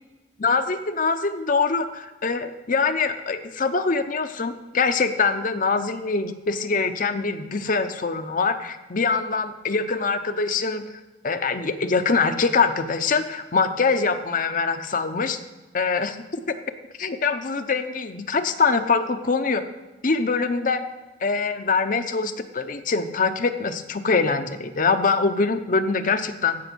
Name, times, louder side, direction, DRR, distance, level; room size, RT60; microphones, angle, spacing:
voice 1, 0.4-10.8 11.2-15.4 15.7-16.2 17.0-19.6 20.0-20.8 21.2-26.6, left 4 dB, 45° left, 8 dB, 0.7 m, -23 dB
16.0 x 6.1 x 6.1 m, 1.2 s
head